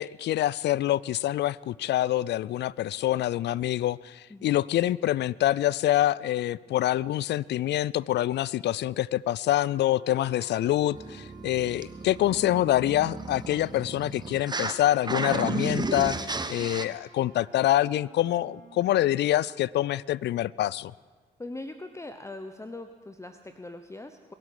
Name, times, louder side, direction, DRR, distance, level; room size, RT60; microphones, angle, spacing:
voice 1, 0.0-16.2 16.5-20.9, left 13 dB, 60° left, 23 dB, 0.4 m, -26 dB
sound 1, 9.6-18.9, right 4 dB, 80° right, 4.3 m, -53 dB
sound 2, 10.9-14.8 15.0-16.8, right 3 dB, 20° right, 1.1 m, -34 dB
voice 2, 21.4-24.3, left 2 dB, 15° left, 8 dB, 0.9 m, -41 dB
22.5 x 8.4 x 6.1 m, 1.4 s
hypercardioid pair, 45°, 20 cm